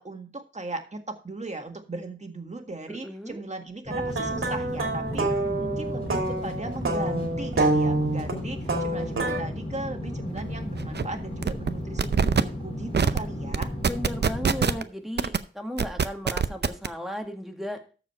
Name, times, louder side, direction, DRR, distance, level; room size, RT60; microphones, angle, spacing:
voice 1, 0.0-13.7, right 2 dB, 35° right, 5 dB, 1.8 m, -37 dB
voice 2, 2.9-3.4 13.8-17.8, equal, ahead, 3 dB, 1.8 m, -35 dB
sound 1, 3.9-14.8, left 1 dB, 30° left, 4.4 m, -35 dB
sound 2, 3.9-9.4, right 2 dB, 90° right, 2.4 m, -27 dB
sound 3, 10.4-10.5 10.8-11.0 11.4-11.7 12.0-12.4 12.9-13.2 13.5-14.8 15.2-15.4 15.8-16.9, right 6 dB, 55° right, 0.6 m, -23 dB
13.5 x 4.9 x 4.5 m, 0.36 s
wide cardioid pair, 75°, 21 cm